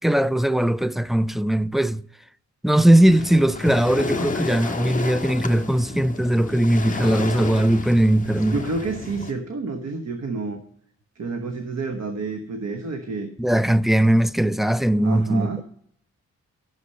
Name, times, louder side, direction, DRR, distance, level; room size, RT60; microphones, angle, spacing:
voice 1, 0.0-2.0 2.6-8.6 13.4-15.6, right 1 dB, ahead, 0.4 m, -19 dB
Waves surf, 3.0-9.3, left 3 dB, 25° left, 1.5 m, -31 dB
voice 2, 8.5-10.6 11.1-13.3 15.0-15.6, right 3 dB, 60° right, 1.3 m, -29 dB
12.0 x 7.1 x 5.5 m
cardioid pair, 95°, 30 cm